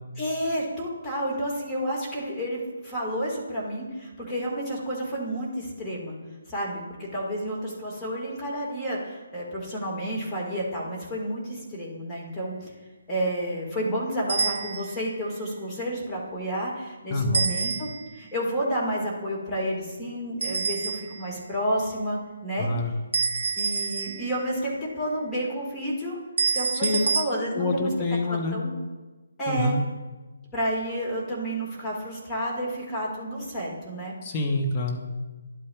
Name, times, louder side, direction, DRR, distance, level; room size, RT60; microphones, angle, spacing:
voice 1, 0.2-6.2 6.5-12.7 13.1-22.7 23.6-26.2 26.5-27.9 28.3-28.7 29.4-29.7 30.5-34.1, equal, 10° left, -5 dB, 1.8 m, -30 dB
sound 1, 14.3-15.1 17.3-18.2 20.4-21.3 23.1-24.6 26.4-27.3, right 4 dB, 70° right, 0.4 m, -27 dB
voice 2, 17.1-17.4 22.6-22.9 26.8-27.1 27.5-28.6 29.5-29.8 34.2-35.0, left 2 dB, 30° left, 2 dB, 1.0 m, -26 dB
11.0 x 8.5 x 2.4 m, 1.2 s
figure-of-eight pair, 145°, 0 cm